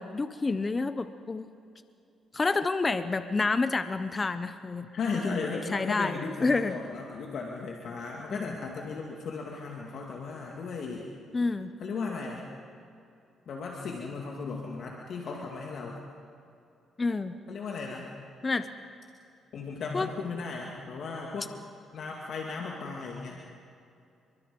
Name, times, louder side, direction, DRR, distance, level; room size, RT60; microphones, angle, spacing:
voice 1, 0.0-1.5 2.3-4.9 5.1-5.4 5.7-6.7 8.3-8.6 11.3-11.7 17.0-17.4 18.4-18.7 19.9-20.1, left 3 dB, 30° left, 11 dB, 0.9 m, -29 dB
voice 2, 4.9-11.1 11.8-12.5 13.5-16.0 17.5-18.1 19.5-21.5 21.9-23.4, left 4 dB, 60° left, -1 dB, 2.5 m, -36 dB
30.0 x 23.5 x 5.4 m, 2.5 s
cardioid pair, 90°, 0 cm